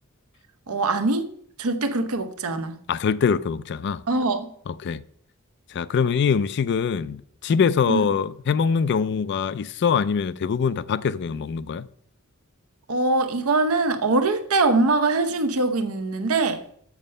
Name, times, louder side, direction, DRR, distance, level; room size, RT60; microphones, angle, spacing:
voice 1, 0.7-1.3 1.6-2.8 4.1-4.5 7.9-8.0 12.9-16.6, right 3 dB, 80° right, 0.8 m, -23 dB
voice 2, 2.9-4.0 4.7-5.0 5.7-11.9, left 6 dB, 55° left, 0.3 m, -23 dB
7.1 x 6.4 x 5.4 m
head